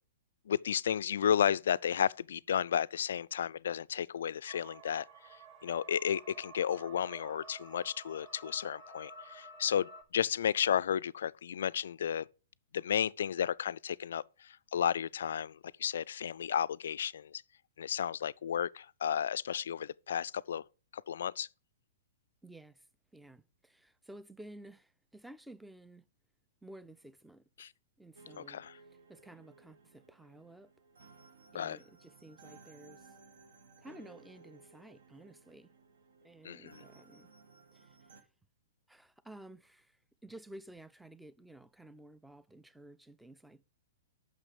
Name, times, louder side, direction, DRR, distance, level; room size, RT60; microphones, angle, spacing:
voice 1, 0.5-5.1 5.6-12.3 12.7-17.4 17.8-20.6 20.9-21.5 27.6-27.7 28.4-28.7 31.5-31.8 36.4-36.8, left 9 dB, 65° left, 0.3 m, -33 dB
sound 1, 4.5-10.0, right 2 dB, 40° right, 2.9 m, -52 dB
voice 2, 22.4-22.9 23.1-26.1 26.6-27.7 28.0-28.6 28.9-30.7 31.5-33.1 33.8-35.7 36.2-37.3 37.7-38.3 38.9-43.6, right 1 dB, 5° right, 0.5 m, -53 dB
sound 2, 28.2-38.2, right 4 dB, 70° right, 1.3 m, -59 dB
8.8 x 6.1 x 5.0 m
figure-of-eight pair, 110°, 0 cm